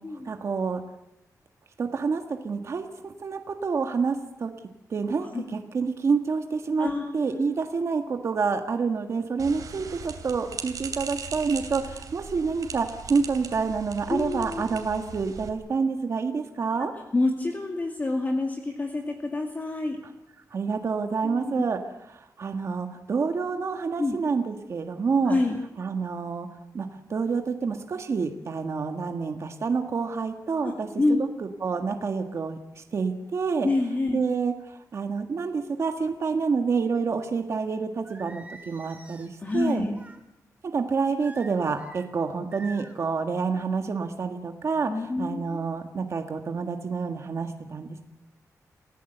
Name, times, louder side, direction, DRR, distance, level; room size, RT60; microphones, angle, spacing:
voice 1, 0.2-0.8 1.8-4.5 4.9-6.9 7.1-16.9 20.0-20.1 20.5-21.8 22.1-25.4 25.8-26.5 26.7-30.9 31.2-33.7 34.1-39.9 40.7-48.0, right 5 dB, 50° right, 5 dB, 1.6 m, -28 dB
voice 2, 6.8-7.5 14.1-14.6 16.8-16.9 17.1-20.0 21.2-21.6 24.0-24.2 25.3-25.6 30.6-31.2 33.6-34.2 39.4-40.0 44.9-45.4, left 2 dB, 30° left, 2 dB, 2.3 m, -27 dB
sound 1, 9.4-15.5, right 6 dB, 70° right, 3.2 m, -39 dB
Singing, 38.0-40.2 41.2-42.0 42.5-43.0, right 2 dB, 20° right, 3.8 m, -47 dB
28.5 x 16.0 x 8.0 m, 0.89 s
wide cardioid pair, 150°, 6 cm